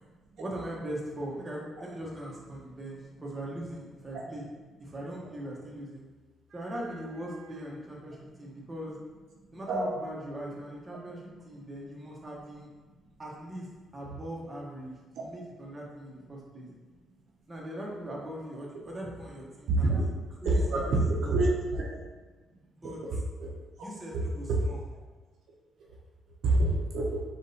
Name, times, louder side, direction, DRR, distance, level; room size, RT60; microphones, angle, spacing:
voice 1, 0.4-4.5 4.8-6.0 6.5-9.0 9.5-12.7 13.2-13.7 13.9-16.7 17.5-20.1 20.4-21.4 22.8-23.0 23.8-24.8, right 1 dB, 20° right, -4 dB, 1.1 m, -40 dB
voice 2, 19.7-20.1 20.4-21.9 23.4-23.5 24.1-24.3 26.4-27.1, right 2 dB, 75° right, -3 dB, 0.8 m, -26 dB
4.2 x 3.6 x 2.8 m, 1.3 s
cardioid pair, 90°, 0 cm